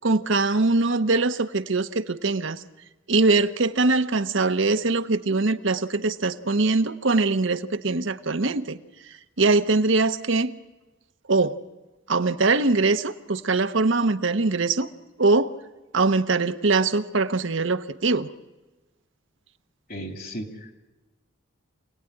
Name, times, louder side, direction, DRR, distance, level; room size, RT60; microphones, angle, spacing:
voice 1, 0.0-2.6 3.1-8.8 9.4-10.5 11.3-11.6 12.1-14.9 15.2-15.5 15.9-18.3, right 3 dB, 65° right, 9 dB, 1.0 m, -22 dB
voice 2, 19.9-20.7, equal, 50° left, 8 dB, 2.6 m, -35 dB
26.5 x 18.0 x 9.9 m, 1.1 s
head